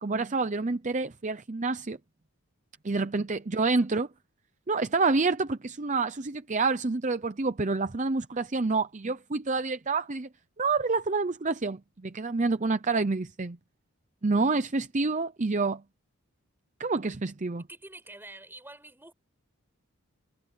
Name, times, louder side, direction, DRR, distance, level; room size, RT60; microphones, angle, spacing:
voice 1, 0.0-2.0 2.8-4.1 4.7-10.3 10.6-13.6 14.2-15.8 16.8-17.6, right 3 dB, 35° right, 0.6 m, -28 dB
voice 2, 3.6-4.1 17.6-19.1, right 2 dB, 10° right, 6.8 m, -48 dB
head